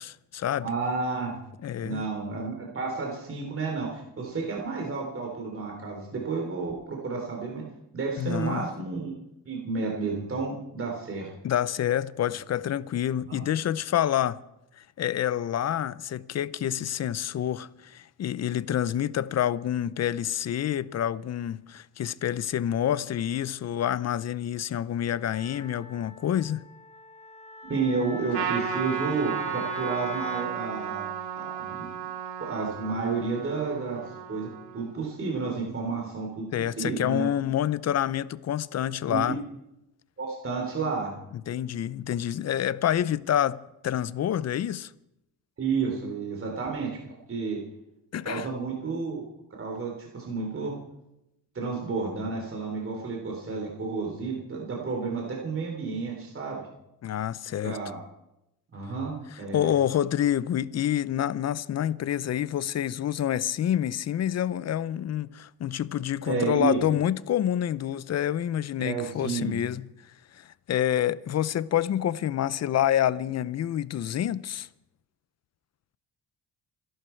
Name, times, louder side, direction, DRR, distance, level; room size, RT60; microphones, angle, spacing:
voice 1, 0.0-0.7 1.6-2.0 8.2-8.7 11.4-14.4 14.8-26.7 36.5-39.4 41.5-44.9 48.1-48.5 57.0-57.8 59.5-69.9 70.3-74.7, left 10 dB, 40° left, 0.6 m, -28 dB
voice 2, 0.6-1.3 1.8-7.6 7.9-9.1 9.5-11.3 13.3-13.5 27.7-31.1 31.4-31.9 32.4-34.5 34.7-36.5 36.8-37.3 39.1-39.3 40.2-41.1 45.6-47.0 47.3-47.6 48.2-49.3 49.6-50.8 51.6-56.6 57.6-58.0 58.7-59.7 66.3-66.8 68.8-69.6, right 4 dB, 35° right, 3.4 m, -31 dB
Wind instrument woodwind instrument, 25.3-30.5, left 5 dB, 15° left, 1.2 m, -42 dB
Trumpet, 28.3-35.0, right 8 dB, 70° right, 2.6 m, -34 dB
27.0 x 11.5 x 4.5 m
cardioid pair, 125°, 40 cm